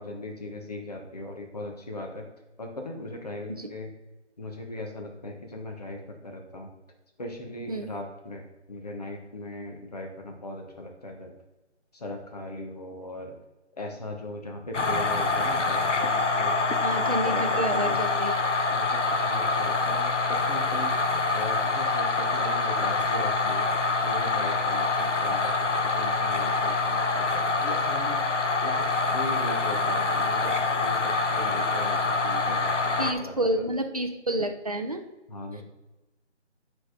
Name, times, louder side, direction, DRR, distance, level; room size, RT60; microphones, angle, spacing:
voice 1, 0.0-2.3 2.6-3.9 4.4-6.7 7.2-11.3 11.9-13.4 13.8-16.6 16.9-18.0 18.7-21.0 21.3-23.7 24.0-28.2 28.6-33.7 35.3-35.6, left 2 dB, 35° left, 2 dB, 1.3 m, -38 dB
sound 1, 14.7-33.1, left 3 dB, 80° left, 1.0 m, -25 dB
voice 2, 16.8-18.3 33.0-35.0 35.5-35.6, right 1 dB, 30° right, 5 dB, 0.6 m, -29 dB
9.4 x 5.0 x 3.8 m, 1.0 s
figure-of-eight pair, 165°, 35 cm